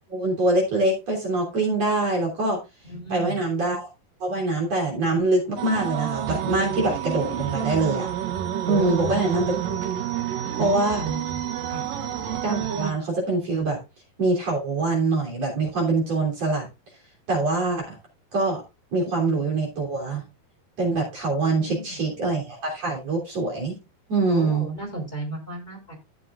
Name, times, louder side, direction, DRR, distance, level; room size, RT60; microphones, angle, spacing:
voice 1, 0.1-2.6 3.1-3.9 4.2-8.1 8.6-9.5 10.5-11.0 12.4-13.8 14.2-16.7 17.3-18.0 18.3-18.6 18.9-20.2 20.8-23.8 24.1-24.7, right 2 dB, 45° right, -2 dB, 4.3 m, -24 dB
voice 2, 2.8-3.4 8.7-9.2 11.0-11.4 11.7-11.9 21.5-21.9 24.3-25.9, right 1 dB, 10° left, 0 dB, 3.0 m, -33 dB
sound 1, 5.6-12.9, right 10 dB, 75° right, 1.6 m, -29 dB
14.5 x 7.3 x 2.5 m, 0.25 s
omnidirectional pair, 4.4 m